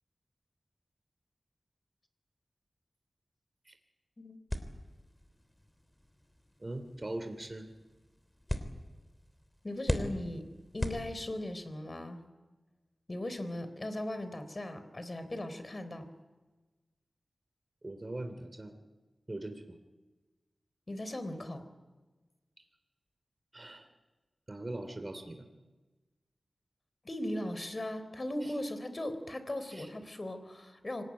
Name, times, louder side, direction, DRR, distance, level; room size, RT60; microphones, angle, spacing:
sound 1, 4.5-11.6, left 1 dB, 20° left, 3.4 m, -40 dB
voice 1, 6.6-7.7 17.8-18.7 19.3-19.8 23.5-23.9 24.5-25.4 28.4-28.5 29.7-29.9, right 2 dB, 35° right, 7 dB, 2.8 m, -41 dB
voice 2, 9.6-10.4 10.7-12.2 13.1-16.1 20.9-21.7 27.0-31.0, left 1 dB, 40° left, 10 dB, 3.8 m, -38 dB
25.5 x 18.5 x 9.8 m, 1.2 s
wide cardioid pair, 55°, 0 cm